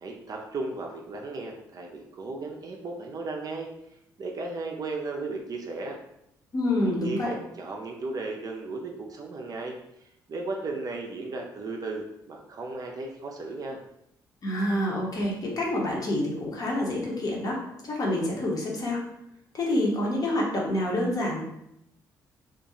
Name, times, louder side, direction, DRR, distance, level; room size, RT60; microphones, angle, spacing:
voice 1, 0.0-3.7 4.2-6.0 6.8-9.8 10.3-13.8, right 3 dB, 40° right, 1 dB, 0.4 m, -35 dB
voice 2, 6.5-7.3 14.4-19.0 19.5-21.4, left 1 dB, 40° left, -2 dB, 0.8 m, -27 dB
2.4 x 2.2 x 2.8 m, 0.79 s
figure-of-eight pair, 40°, 10 cm